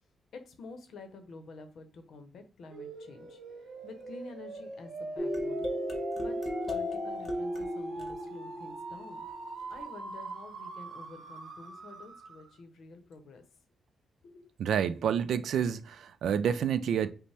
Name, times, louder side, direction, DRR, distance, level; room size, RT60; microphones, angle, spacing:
voice 1, 0.3-3.4 3.8-5.7 6.2-9.2 9.7-13.4 14.2-14.5, left 3 dB, 65° left, 0.7 m, -49 dB
sound 1, 2.7-12.6, right 4 dB, 55° right, 0.7 m, -43 dB
sound 2, 5.2-9.6, left 1 dB, 20° left, 0.6 m, -35 dB
voice 2, 14.6-17.1, right 8 dB, 75° right, 0.3 m, -29 dB
5.2 x 2.1 x 3.3 m
wide cardioid pair, 175°, 0 cm